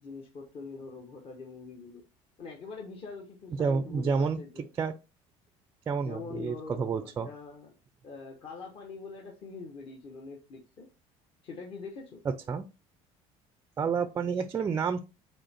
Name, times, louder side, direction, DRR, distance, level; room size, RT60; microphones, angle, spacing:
voice 1, 0.0-2.0 2.4-4.7 6.0-7.7 8.0-10.9 11.4-12.2, left 4 dB, 40° left, 1.2 m, -43 dB
voice 2, 3.6-4.4 4.8-4.9 5.9-7.3 12.3-12.7 13.8-15.0, right 5 dB, 20° right, 0.4 m, -29 dB
5.2 x 4.4 x 4.3 m
cardioid pair, 150°, 13 cm